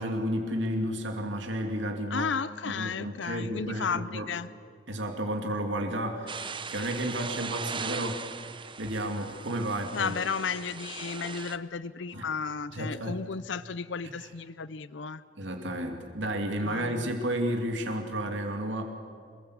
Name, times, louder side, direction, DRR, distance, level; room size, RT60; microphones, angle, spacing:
voice 1, 0.0-2.3 2.6-4.3 4.9-8.3 8.8-10.1 12.1-12.3 12.7-13.2 15.3-18.8, right 1 dB, 70° right, 3 dB, 2.7 m, -32 dB
voice 2, 2.1-4.5 9.9-15.2 16.6-17.1, left 5 dB, 70° left, 16 dB, 0.6 m, -33 dB
sound 1, 6.3-11.6, right 5 dB, 25° right, 0.9 m, -39 dB
27.5 x 21.5 x 8.3 m, 2.2 s
head